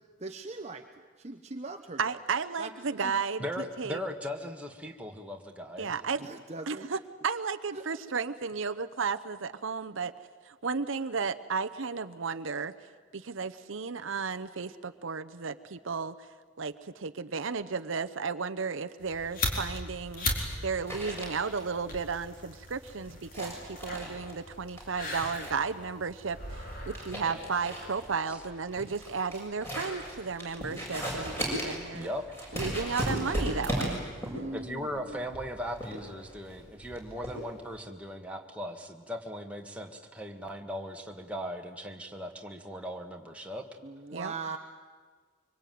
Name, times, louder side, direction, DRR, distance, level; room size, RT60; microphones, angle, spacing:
voice 1, 0.2-2.2 2.6-2.7 3.0-3.1 6.2-6.9 7.7-7.8 34.2-35.2 43.8-44.6, right 3 dB, 35° right, 4 dB, 0.9 m, -40 dB
voice 2, 2.0-4.0 5.8-6.2 6.7-10.1 10.4-12.7 13.1-16.3 16.6-20.3 20.6-32.1 32.5-34.0 44.1-44.3, right 5 dB, 70° right, 9 dB, 0.8 m, -34 dB
voice 3, 3.4-5.9 28.3-28.4 31.9-32.2 34.5-43.7, equal, 5° right, 2 dB, 1.8 m, -38 dB
Lighting a cigarette, 19.0-28.2, left 2 dB, 45° left, 4.2 m, -39 dB
sound 1, 19.1-37.8, equal, 10° left, 7.4 m, -37 dB
24.5 x 24.5 x 9.4 m, 1.5 s
head